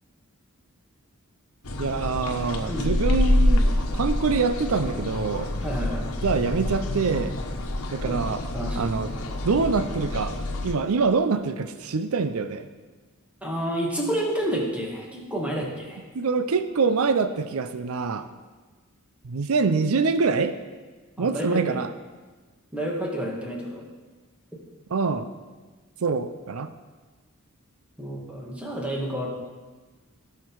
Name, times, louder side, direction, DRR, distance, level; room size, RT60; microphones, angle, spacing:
sound 1, 1.6-10.7, left 1 dB, 85° left, 1.2 m, -26 dB
voice 1, 1.8-5.5 6.2-7.3 7.9-8.4 8.8-9.1 9.4-10.3 10.6-12.7 16.1-18.3 19.2-20.5 21.2-21.9 24.9-25.3 26.0-26.7, right 4 dB, 75° right, 11 dB, 0.6 m, -25 dB
voice 2, 5.6-6.1 8.0-8.9 13.4-16.0 21.2-21.8 22.7-23.8 28.0-29.4, equal, 5° right, -2 dB, 1.9 m, -30 dB
16.0 x 5.9 x 4.7 m, 1.3 s
head